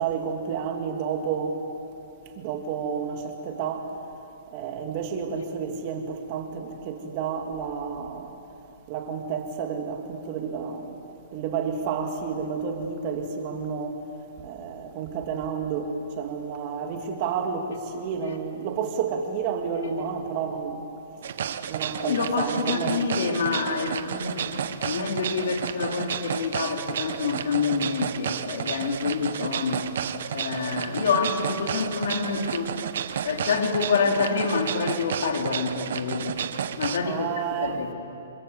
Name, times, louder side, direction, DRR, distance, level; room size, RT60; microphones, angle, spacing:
voice 1, 0.0-1.6 2.4-3.9 4.5-8.3 8.9-11.0 11.3-14.0 14.4-20.9 21.7-23.0 24.4-24.6 37.0-37.9, right 6 dB, 35° right, 3 dB, 2.6 m, -30 dB
sound 1, 21.2-37.0, right 8 dB, 65° right, 1.3 m, -31 dB
voice 2, 22.0-29.9 30.3-32.7 33.2-36.4 36.8-37.9, left 5 dB, 75° left, 3 dB, 3.0 m, -27 dB
28.0 x 24.5 x 8.2 m, 2.7 s
hypercardioid pair, 155°, 0 cm